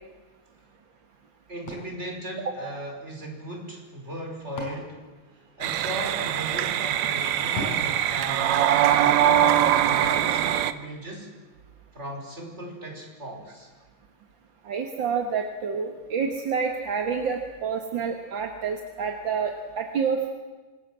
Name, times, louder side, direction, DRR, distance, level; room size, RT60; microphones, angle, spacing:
voice 1, 1.5-5.0 5.3-11.3 11.9-13.7, right 1 dB, 20° right, 1 dB, 5.0 m, -37 dB
sound 1, 1.7-3.2 4.1-6.0 7.5-9.2, left 1 dB, 60° left, 6.1 m, -40 dB
sound 2, 5.6-10.7, right 11 dB, 70° right, 2.0 m, -22 dB
voice 2, 14.7-20.3, right 6 dB, 45° right, 4 dB, 1.8 m, -28 dB
26.0 x 20.5 x 7.5 m, 1.3 s
omnidirectional pair, 3.4 m